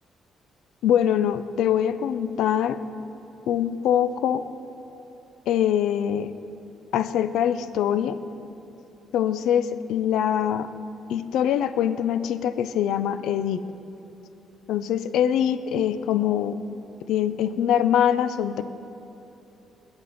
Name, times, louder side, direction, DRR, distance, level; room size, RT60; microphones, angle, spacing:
voice 1, 0.8-2.8 3.5-4.4 5.5-6.3 6.9-8.2 9.1-10.7 11.1-13.6 14.7-16.6 17.1-18.6, left 9 dB, 85° left, 12 dB, 0.4 m, -23 dB
21.5 x 8.0 x 4.1 m, 2.9 s
cardioid pair, 90°, 0 cm